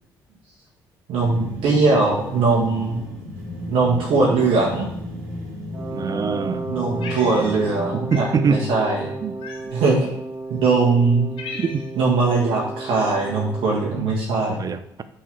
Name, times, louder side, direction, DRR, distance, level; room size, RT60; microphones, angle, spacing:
voice 1, 1.1-3.0 3.7-4.9 6.7-9.1 9.7-10.1 10.5-11.3 12.0-14.6, right 3 dB, 60° right, -4 dB, 1.5 m, -20 dB
sound 1, 1.2-8.0, left 1 dB, 85° right, 1.8 m, -34 dB
Wind instrument woodwind instrument, 5.7-13.8, right 3 dB, 10° right, 2.3 m, -33 dB
voice 2, 5.9-6.6 8.1-8.7 9.2-9.3 9.6-9.7 11.6-11.8 14.6-15.0, right 5 dB, 35° right, 11 dB, 0.7 m, -23 dB
Cat, 7.0-7.8 8.1-8.4 9.4-9.9 10.6-10.7 11.1-12.1, left 4 dB, 55° left, 1.2 m, -37 dB
6.0 x 4.8 x 5.9 m, 0.78 s
figure-of-eight pair, 45°, 10 cm